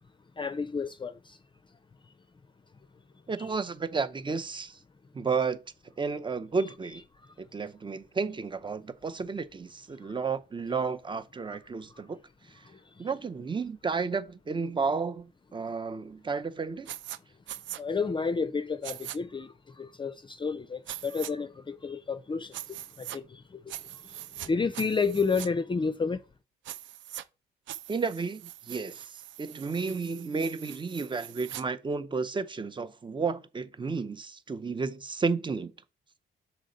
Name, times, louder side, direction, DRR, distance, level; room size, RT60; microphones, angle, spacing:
voice 1, 0.4-1.4 12.6-13.1 17.8-26.2, left 4 dB, 25° left, 0.5 m, -31 dB
voice 2, 3.3-4.8 5.1-5.6 6.0-7.0 7.4-12.2 12.5-12.6 13.0-16.9 27.9-35.7, right 4 dB, 25° right, 0.6 m, -32 dB
sound 1, 16.9-17.2 17.5-17.8 18.8-19.2 20.9-21.3 22.5-23.2 23.7-24.5 24.7-25.5 26.6-27.2 27.7-31.6, right 12 dB, 70° right, 0.5 m, -42 dB
6.3 x 4.2 x 3.9 m
cardioid pair, 90°, 20 cm